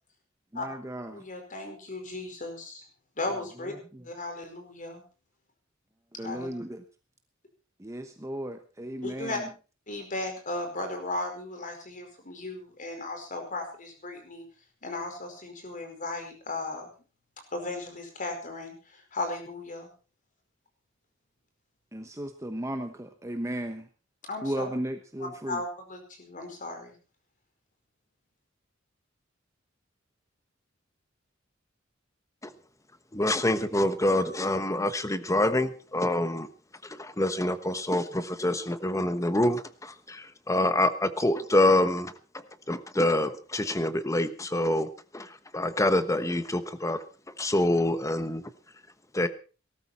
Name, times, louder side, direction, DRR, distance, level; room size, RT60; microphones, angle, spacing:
voice 1, 0.5-1.2 3.9-4.0 6.2-6.8 7.8-9.5 21.9-23.9 24.4-25.6, right 1 dB, 15° right, 7 dB, 1.1 m, -35 dB
voice 2, 1.1-2.8 3.2-3.7 4.0-5.0 6.2-6.5 9.0-9.4 9.9-14.4 14.8-16.9 17.5-19.9 24.3-24.7 25.5-26.9, left 2 dB, 45° left, 5 dB, 4.9 m, -36 dB
voice 3, 33.1-36.5 36.8-47.0 47.4-48.4 49.1-49.3, left 1 dB, 15° left, 12 dB, 1.1 m, -26 dB
19.0 x 13.0 x 4.3 m, 0.35 s
head